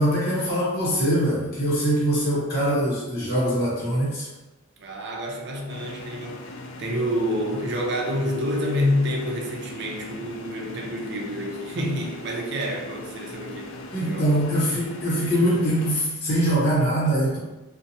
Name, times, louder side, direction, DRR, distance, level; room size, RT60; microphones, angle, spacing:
voice 1, 0.0-4.3 13.9-17.4, right 1 dB, 50° left, -7 dB, 0.8 m, -23 dB
voice 2, 4.8-14.3, equal, 60° right, 0 dB, 0.5 m, -28 dB
sound 1, 5.7-15.9, left 2 dB, 75° left, 0.3 m, -40 dB
2.7 x 2.1 x 2.6 m, 1.1 s
head